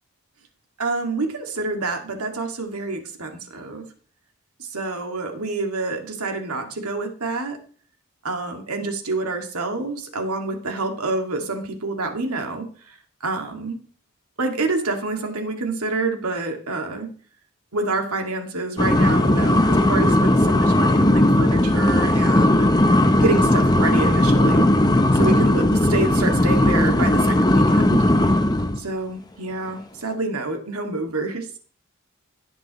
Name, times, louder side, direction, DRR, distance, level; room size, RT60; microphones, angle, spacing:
voice 1, 0.8-3.8 4.6-7.6 8.2-13.0 13.2-13.8 14.4-17.1 17.7-22.7 23.2-24.7 25.1-28.0 28.8-31.5, right 3 dB, 85° right, 4 dB, 2.0 m, -27 dB
sound 1, 18.8-28.8, left 1 dB, 20° left, 0.6 m, -17 dB
17.0 x 7.5 x 3.0 m, 0.43 s
head